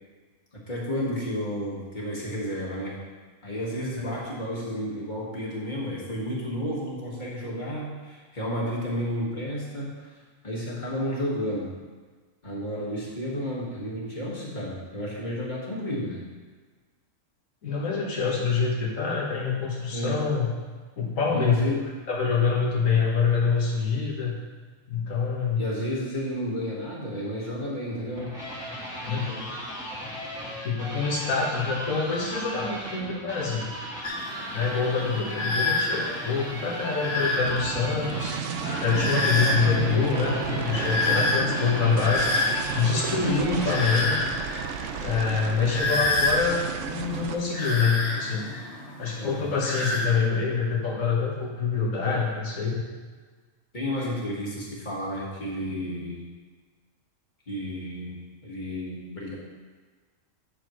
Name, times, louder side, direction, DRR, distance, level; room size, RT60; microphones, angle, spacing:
voice 1, 0.7-3.0 3.4-10.2 10.4-11.7 12.4-16.2 19.9-20.2 21.3-21.8 25.6-28.3 49.2-49.4 52.0-52.2 53.7-56.3 57.5-58.2 58.4-59.4, equal, 35° left, -5 dB, 1.9 m, -31 dB
voice 2, 17.6-20.5 21.0-21.6 22.1-24.3 24.9-25.6 29.0-29.5 30.6-33.7 34.5-38.4 38.8-42.4 42.7-44.2 45.0-48.5 49.0-52.8, left 5 dB, 80° left, -3 dB, 1.8 m, -26 dB
sound 1, 27.9-44.4, equal, 5° right, 1.9 m, -37 dB
sound 2, 34.0-50.1, left 2 dB, 55° left, 1.5 m, -30 dB
sound 3, 37.4-47.4, right 7 dB, 70° right, 0.9 m, -33 dB
11.0 x 6.5 x 3.1 m, 1.4 s
omnidirectional pair, 1.4 m